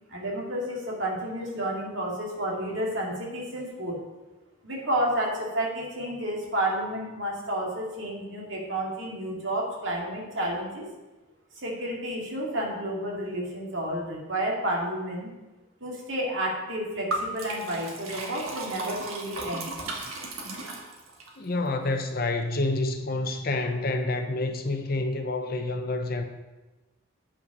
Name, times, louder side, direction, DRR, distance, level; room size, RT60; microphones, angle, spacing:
voice 1, 0.1-4.0 4.6-10.9 11.5-15.3 15.8-19.7, right 1 dB, 65° right, -2 dB, 2.3 m, -31 dB
Liquid, 17.1-21.3, right 2 dB, 85° right, 1.5 m, -35 dB
voice 2, 21.4-26.2, left 2 dB, 45° left, 6 dB, 0.7 m, -28 dB
8.2 x 5.6 x 5.3 m, 1.1 s
head